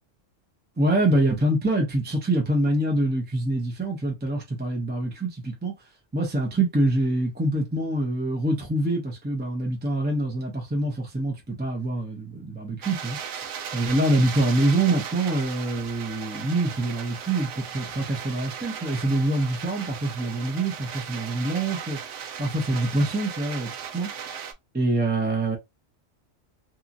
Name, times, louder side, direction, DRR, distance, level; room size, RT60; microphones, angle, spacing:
voice 1, 0.8-5.7 6.1-22.0 22.4-24.4 24.7-25.6, right 1 dB, 15° right, 0.4 m, -25 dB
sound 1, 12.8-24.5, right 8 dB, 75° right, 0.9 m, -37 dB
2.8 x 2.5 x 2.5 m
omnidirectional pair, 1.3 m